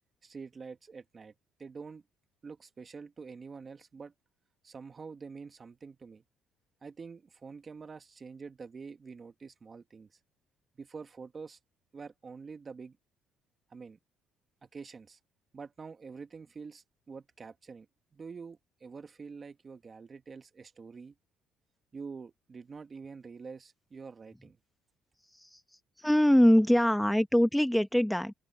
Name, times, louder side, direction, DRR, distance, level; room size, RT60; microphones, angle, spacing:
voice 1, 0.2-1.3 1.6-2.0 2.4-4.1 4.6-6.2 6.8-10.1 10.8-11.6 11.9-13.0 13.7-14.0 14.6-15.2 15.5-17.9 18.1-21.1 21.9-24.6, right 5 dB, 30° right, 1.5 m, -46 dB
voice 2, 26.0-28.3, equal, 5° left, 1.0 m, -23 dB
open air
cardioid pair, 105°, 0 cm